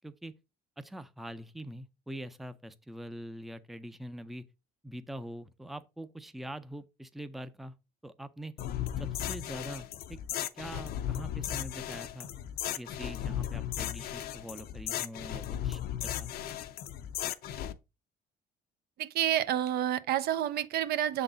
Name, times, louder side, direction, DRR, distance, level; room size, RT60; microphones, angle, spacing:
voice 1, 0.0-0.3 0.8-4.4 4.8-7.7 8.0-8.5 9.0-10.2 10.5-12.3 12.8-16.3, right 1 dB, ahead, 0.4 m, -44 dB
sound 1, 8.6-17.7, left 11 dB, 65° left, 0.6 m, -36 dB
voice 2, 19.0-21.2, right 11 dB, 70° right, 0.5 m, -29 dB
6.9 x 3.9 x 3.9 m
cardioid pair, 110°, 17 cm